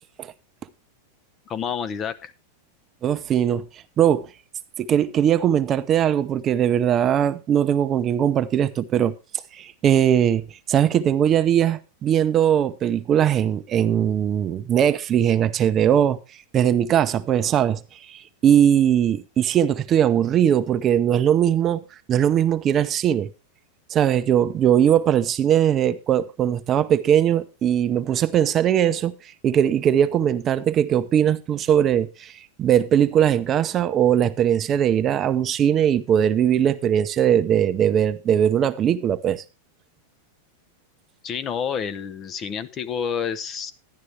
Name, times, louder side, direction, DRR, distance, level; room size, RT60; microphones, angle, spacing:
voice 1, 1.5-2.3 41.2-43.7, left 7 dB, 30° left, 0.8 m, -29 dB
voice 2, 3.0-3.6 4.0-4.3 4.8-9.1 9.5-16.2 16.5-17.8 18.1-21.8 22.1-23.3 23.9-29.1 29.4-32.3 32.6-39.4, right 9 dB, 30° right, 0.7 m, -20 dB
11.5 x 10.5 x 3.3 m
hypercardioid pair, 125°, 0 cm